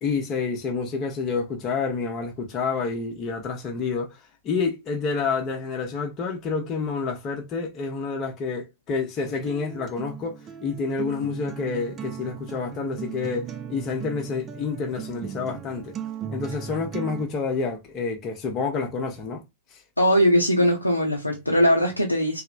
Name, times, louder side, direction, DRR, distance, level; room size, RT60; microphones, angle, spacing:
voice 1, 0.0-4.2 4.4-15.9 16.3-19.4 19.7-19.8, left 4 dB, 35° left, 0.7 m, -28 dB
Acoustic guitar, 9.2-17.2, right 8 dB, 25° right, 0.3 m, -37 dB
voice 2, 20.0-22.4, equal, 85° left, 0.5 m, -20 dB
3.0 x 2.0 x 2.4 m
figure-of-eight pair, 90°, 0 cm